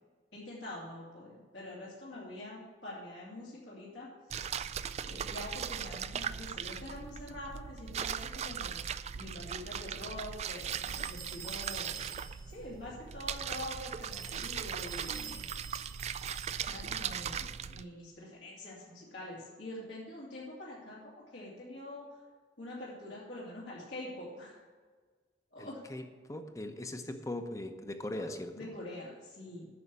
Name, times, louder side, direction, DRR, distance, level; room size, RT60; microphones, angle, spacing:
voice 1, 0.3-4.4 5.0-8.9 9.1-12.0 12.4-15.4 16.6-22.2 22.6-24.6 25.5-25.8 28.1-28.2 28.6-29.7, left 1 dB, 80° left, -7 dB, 2.8 m, -45 dB
sound 1, 4.3-17.8, right 8 dB, 40° right, 0.3 m, -39 dB
sound 2, 10.6-12.6 14.0-16.9, right 8 dB, 55° right, 1.2 m, -47 dB
voice 2, 25.6-28.7, left 1 dB, 20° left, 7 dB, 0.8 m, -40 dB
9.6 x 6.3 x 8.3 m, 1.4 s
head